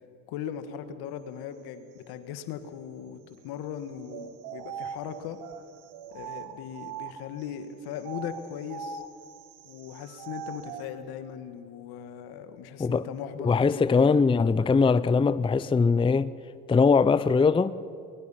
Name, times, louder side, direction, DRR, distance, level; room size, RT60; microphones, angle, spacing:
voice 1, 0.3-5.4 6.1-9.0 9.6-14.2, left 9 dB, 70° left, 1.7 m, -39 dB
sound 1, 4.1-7.5 8.0-10.9, right 7 dB, 70° right, 1.8 m, -41 dB
voice 2, 13.4-16.3 16.7-17.8, left 4 dB, 15° left, 0.5 m, -21 dB
23.5 x 21.5 x 5.7 m
supercardioid pair, 75°, 38 cm